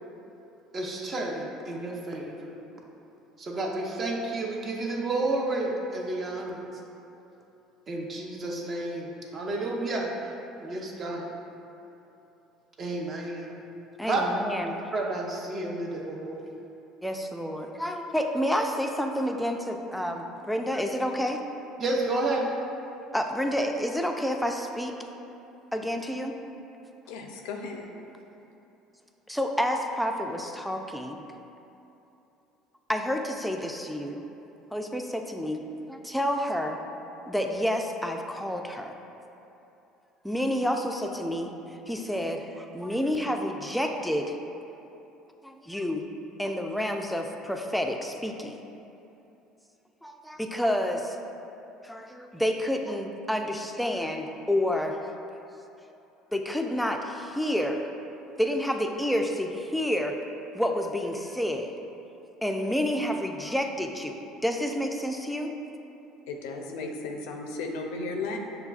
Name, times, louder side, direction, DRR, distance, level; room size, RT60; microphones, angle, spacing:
voice 1, 0.7-2.5 3.4-6.7 7.9-10.1 10.6-11.3 12.8-13.6 14.1-14.2 14.9-16.4 21.8-22.5, right 2 dB, 40° right, -1 dB, 0.6 m, -31 dB
voice 2, 14.0-14.8 17.0-21.4 23.1-25.0 25.7-26.4 29.3-31.2 32.9-34.2 34.7-35.6 35.9-36.8 37.3-38.9 40.2-41.5 41.9-44.3 45.4-46.1 46.4-48.6 50.0-51.2 51.8-55.0 56.3-57.9 58.4-60.2 60.5-61.7 62.4-65.5, equal, ahead, 3 dB, 0.3 m, -29 dB
voice 3, 27.1-27.9 66.3-68.4, left 3 dB, 80° left, 2 dB, 0.4 m, -35 dB
6.6 x 2.3 x 2.4 m, 2.9 s
hypercardioid pair, 80°, 0 cm